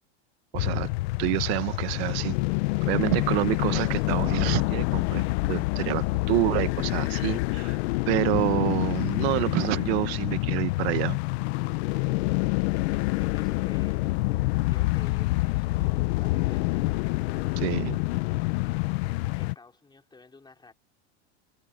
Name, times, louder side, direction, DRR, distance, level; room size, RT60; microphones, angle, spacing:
sound 1, 0.5-19.5, left 22 dB, 65° left, 1.0 m, -27 dB
voice 1, 0.5-0.9 1.2-2.3 2.9-7.8 8.1-11.2 17.6-18.0, right 23 dB, 65° right, 1.0 m, -28 dB
voice 2, 13.1-16.9 17.3-18.0 19.4-20.7, left 3 dB, 10° left, 3.9 m, -51 dB
supercardioid pair, 120°, 35 cm